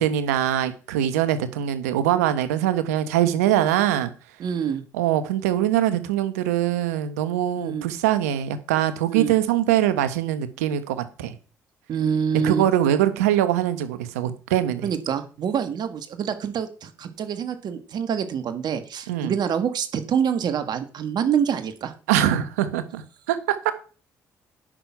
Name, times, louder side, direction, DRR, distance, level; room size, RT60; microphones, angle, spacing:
voice 1, 0.0-4.1 4.9-11.3 12.4-14.9 19.1-19.3 22.1-23.7, right 11 dB, 90° right, 12 dB, 0.9 m, -23 dB
voice 2, 4.4-4.8 7.6-7.9 9.1-9.3 11.9-12.7 14.8-21.9, right 7 dB, 60° right, 9 dB, 1.6 m, -26 dB
10.0 x 6.3 x 5.7 m, 0.37 s
hypercardioid pair, 50°, 8 cm